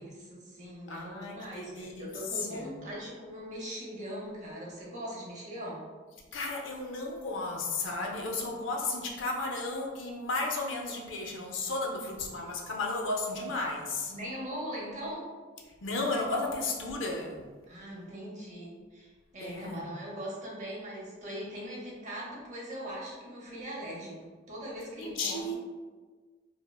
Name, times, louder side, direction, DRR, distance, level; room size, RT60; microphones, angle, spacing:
voice 1, 0.0-5.8 14.1-15.3 17.7-24.2 24.5-25.5, equal, 40° right, -4 dB, 0.7 m, -40 dB
voice 2, 0.9-2.1 2.5-2.7 6.3-14.1 15.8-17.4 19.4-19.9 25.0-25.6, left 2 dB, 75° left, 1 dB, 0.5 m, -34 dB
3.2 x 2.0 x 2.2 m, 1.4 s
head